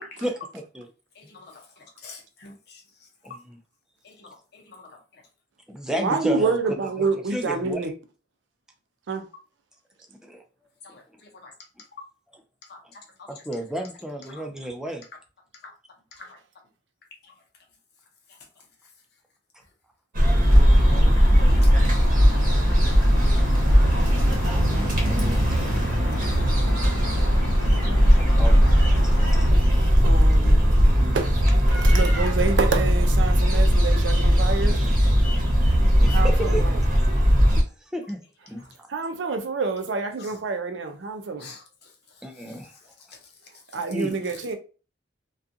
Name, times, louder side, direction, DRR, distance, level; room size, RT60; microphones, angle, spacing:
voice 1, 0.2-0.9 3.2-3.6 5.7-6.6 7.0-7.9 10.3-10.4 13.3-15.0 24.2-25.7 28.1-28.6 29.4-29.5 34.8-34.9 36.0-36.6 37.6-37.7 37.9-38.2 38.5-38.6 42.2-42.7 43.9-44.1, right 1 dB, 5° right, 0.3 m, -33 dB
voice 2, 1.2-2.8 4.0-4.9 10.8-11.0 11.4-11.5 12.7-12.8 13.3-13.4 14.3-14.4 15.6-15.7 16.2-16.4 17.2-17.3 21.6-21.7 40.2-40.3 41.4-41.6 42.5-42.6 43.1-43.2, left 4 dB, 60° left, 0.8 m, -46 dB
voice 3, 5.9-7.9 9.1-9.2 30.0-31.4 31.7-34.8 36.1-36.8 38.9-41.5 43.7-44.6, right 4 dB, 70° right, 0.5 m, -27 dB
sound 1, 20.1-37.6, equal, 45° right, 0.8 m, -18 dB
sound 2, 20.5-29.5, left 1 dB, 85° left, 0.4 m, -34 dB
2.4 x 2.3 x 2.6 m
head